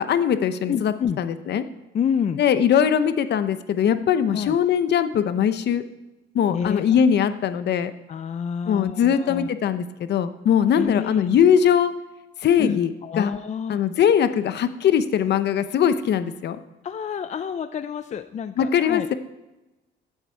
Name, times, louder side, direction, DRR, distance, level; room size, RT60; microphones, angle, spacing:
voice 1, 0.1-1.6 2.4-5.8 6.3-7.9 8.7-11.9 12.4-13.3 13.7-16.6 18.6-19.1, left 8 dB, 60° left, 12 dB, 0.8 m, -21 dB
voice 2, 0.7-1.2 1.9-2.4 4.3-4.6 6.5-6.8 8.1-9.5 10.7-11.3 12.6-13.8 16.8-19.1, left 7 dB, 35° left, 11 dB, 0.5 m, -28 dB
15.0 x 8.2 x 4.6 m, 1.0 s
cardioid pair, 105°, 20 cm